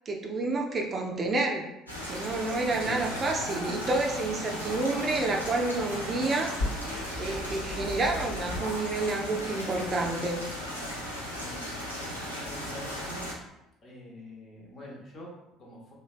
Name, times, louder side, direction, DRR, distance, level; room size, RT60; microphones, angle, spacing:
voice 1, 0.1-1.7 2.1-6.5 7.2-10.4, right 2 dB, 35° right, 1 dB, 0.4 m, -29 dB
sound 1, 1.9-13.3, equal, 90° left, 0.5 m, -37 dB
Whispering, 2.8-9.3, left 1 dB, 70° left, 1.1 m, -39 dB
sound 2, 4.0-9.2, equal, 85° right, 0.5 m, -49 dB
voice 2, 11.3-12.1 12.4-13.3 13.8-15.9, equal, 40° left, -3 dB, 0.9 m, -46 dB
3.2 x 2.2 x 2.4 m, 0.89 s
figure-of-eight pair, 55°, 0 cm